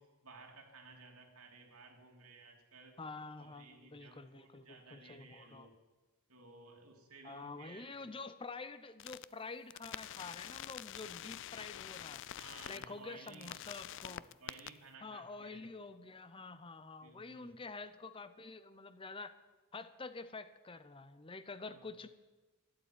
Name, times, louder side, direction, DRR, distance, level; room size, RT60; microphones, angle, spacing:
voice 1, 0.0-3.0 3.4-5.8 6.3-8.1 12.4-13.7 14.0-15.6 17.0-17.5 21.6-21.9, right 3 dB, 80° right, 2 dB, 2.8 m, -57 dB
voice 2, 3.0-5.7 7.2-12.2 12.7-14.3 15.0-19.4 19.7-22.1, left 3 dB, 25° left, 13 dB, 0.7 m, -48 dB
sound 1, 9.0-9.2 9.7-12.9 13.3-14.7, left 12 dB, 60° left, 0.4 m, -46 dB
12.5 x 12.0 x 9.1 m, 1.2 s
head